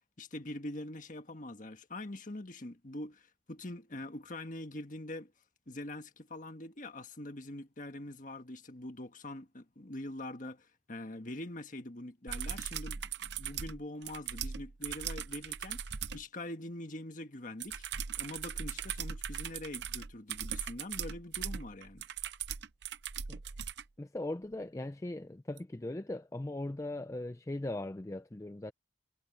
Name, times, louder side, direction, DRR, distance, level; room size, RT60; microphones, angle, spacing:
voice 1, 0.0-5.3 5.7-17.8 18.2-22.1, left 1 dB, 40° left, 1.6 m, -44 dB
sound 1, 12.3-16.2 17.6-23.8 25.6-25.7, right 8 dB, 60° right, 0.7 m, -39 dB
voice 2, 24.0-28.7, left 1 dB, 15° left, 0.4 m, -39 dB
head